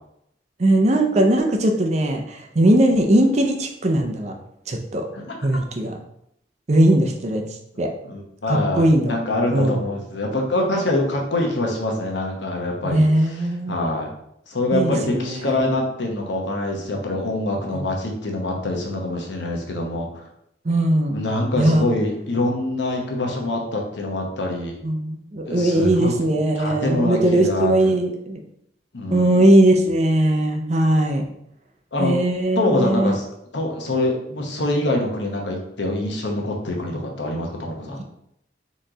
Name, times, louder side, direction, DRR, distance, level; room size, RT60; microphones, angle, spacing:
voice 1, 0.6-4.3 4.7-5.1 5.4-6.0 6.7-7.4 7.8-7.9 8.5-9.2 9.5-9.8 12.8-13.8 14.7-15.7 17.7-17.9 20.6-21.2 21.6-21.9 24.8-28.4 29.1-31.2 32.0-33.2 38.0-38.1, right 1 dB, 35° right, 4 dB, 0.5 m, -19 dB
voice 2, 8.0-14.1 14.5-20.2 21.1-24.8 25.5-27.9 28.9-29.5 31.9-32.1 32.5-33.2 33.5-38.0, left 1 dB, 75° left, 1 dB, 1.0 m, -25 dB
4.3 x 3.1 x 3.8 m, 0.77 s
head